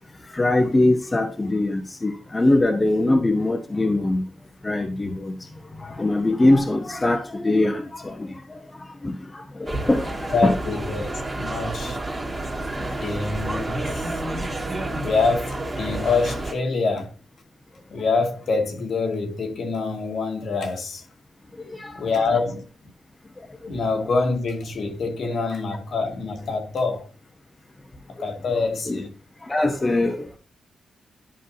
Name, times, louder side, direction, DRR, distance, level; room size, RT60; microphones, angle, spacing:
voice 1, 0.3-4.2 4.6-5.3 5.8-8.6 9.0-10.6 21.7-21.9 28.5-29.0 29.4-30.4, left 2 dB, 15° left, 1.1 m, -22 dB
sound 1, 9.7-16.5, right 2 dB, 15° right, 2.0 m, -30 dB
voice 2, 10.3-11.1 11.4-12.0 12.8-14.1 15.0-17.1 17.9-21.0 22.0-22.6 23.7-27.1 28.2-29.1, left 4 dB, 55° left, 1.9 m, -25 dB
11.5 x 5.8 x 2.8 m
wide cardioid pair, 160°, 0 cm